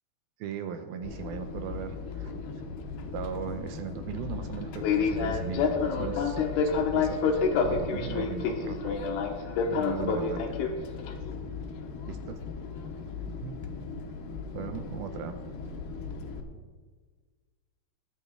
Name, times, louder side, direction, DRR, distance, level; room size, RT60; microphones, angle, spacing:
voice 1, 0.4-2.3 3.1-6.6 6.9-9.0 9.7-10.6 12.1-12.4 13.2-13.6 14.5-15.4, right 8 dB, 80° right, 8 dB, 2.3 m, -38 dB
Fixed-wing aircraft airplane, 1.0-16.4, left 5 dB, 75° left, 3.0 m, -31 dB
21.0 x 8.4 x 3.6 m, 1.5 s
omnidirectional pair, 4.8 m